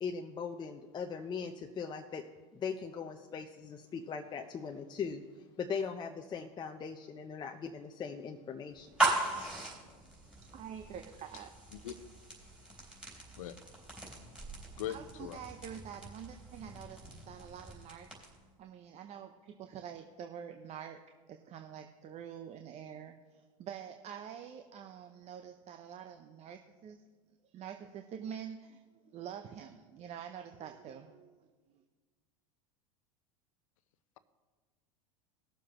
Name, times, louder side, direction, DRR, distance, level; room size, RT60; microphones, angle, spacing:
voice 1, 0.0-2.2 2.5-9.1, left 6 dB, 25° left, 3 dB, 0.7 m, -40 dB
sound 1, 8.8-18.5, right 3 dB, 5° right, 3.6 m, -39 dB
voice 2, 10.5-11.5 14.9-18.1 18.6-21.0 21.3-27.0 27.5-28.8 29.1-31.8, right 8 dB, 40° right, 6 dB, 0.7 m, -46 dB
voice 3, 14.8-15.4, left 12 dB, 75° left, 12 dB, 0.8 m, -40 dB
19.0 x 7.2 x 3.0 m, 1.4 s
hypercardioid pair, 100°, 18 cm